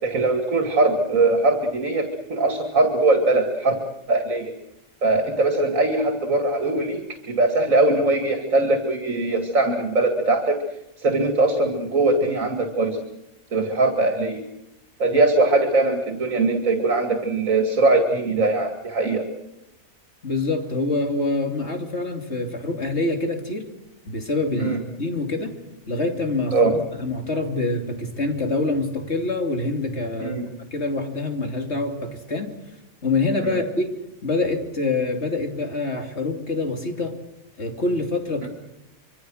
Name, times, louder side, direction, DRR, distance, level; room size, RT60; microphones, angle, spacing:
voice 1, 0.0-3.8 4.1-4.5 5.0-7.0 7.3-10.6 11.0-13.0 13.5-14.4 15.0-19.2 24.6-24.8 26.5-26.7 30.2-30.4 33.4-33.6 38.4-38.5, right 2 dB, 70° right, 5 dB, 2.7 m, -21 dB
voice 2, 20.2-23.6 24.1-25.5 25.9-30.4 30.7-32.5 33.0-33.9 34.2-37.1 37.6-38.5, left 2 dB, 55° left, 4 dB, 3.0 m, -25 dB
26.0 x 24.5 x 6.4 m, 0.89 s
omnidirectional pair, 1.4 m